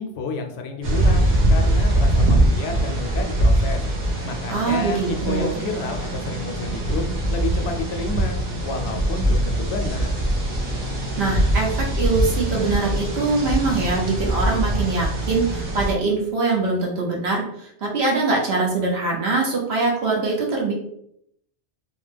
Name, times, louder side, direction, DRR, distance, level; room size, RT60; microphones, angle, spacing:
voice 1, 0.0-3.8 4.2-7.0 7.3-8.4 8.6-10.2, left 3 dB, 70° left, 4 dB, 0.8 m, -30 dB
sound 1, 0.8-15.9, right 1 dB, 50° right, 0.7 m, -22 dB
voice 2, 4.5-5.6 11.2-20.7, right 3 dB, 65° right, -2 dB, 1.0 m, -23 dB
2.9 x 2.1 x 3.3 m, 0.72 s
omnidirectional pair, 1.2 m